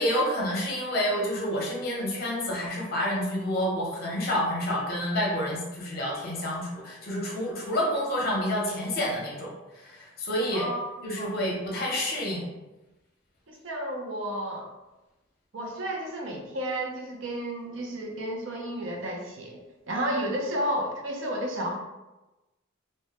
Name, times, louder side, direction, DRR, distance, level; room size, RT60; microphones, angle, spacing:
voice 1, 0.0-10.7 11.0-12.5, equal, 45° left, -2 dB, 0.6 m, -29 dB
voice 2, 10.5-11.3 13.5-14.7 15.5-19.6 19.9-21.7, right 1 dB, 65° right, 0 dB, 0.5 m, -32 dB
2.1 x 2.1 x 2.8 m, 1.1 s
head